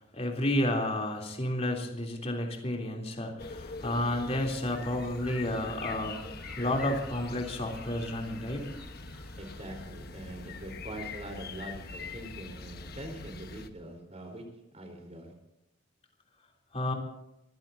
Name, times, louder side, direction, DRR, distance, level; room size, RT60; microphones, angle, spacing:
voice 1, 0.0-6.2 6.6-8.8 16.7-16.9, left 1 dB, 35° left, 1 dB, 3.4 m, -31 dB
sound 1, 3.4-13.7, left 4 dB, 55° left, 1.3 m, -43 dB
Gull seagull, 4.1-9.9, equal, 5° right, 5.1 m, -53 dB
voice 2, 9.4-15.3, right 1 dB, 35° right, 4 dB, 4.2 m, -43 dB
25.0 x 16.0 x 2.8 m, 0.89 s
head